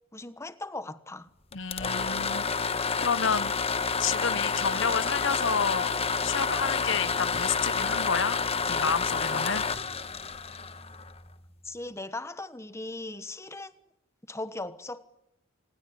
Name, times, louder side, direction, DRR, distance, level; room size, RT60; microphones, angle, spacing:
voice 1, 0.1-1.3 11.6-13.7 14.3-15.1, left 2 dB, 15° left, 1.2 m, -38 dB
voice 2, 1.5-3.5 4.0-5.9 6.2-9.6, left 6 dB, 65° left, 1.0 m, -30 dB
sound 1, 1.5-11.3, left 5 dB, 30° left, 1.2 m, -29 dB
27.0 x 20.0 x 9.7 m
head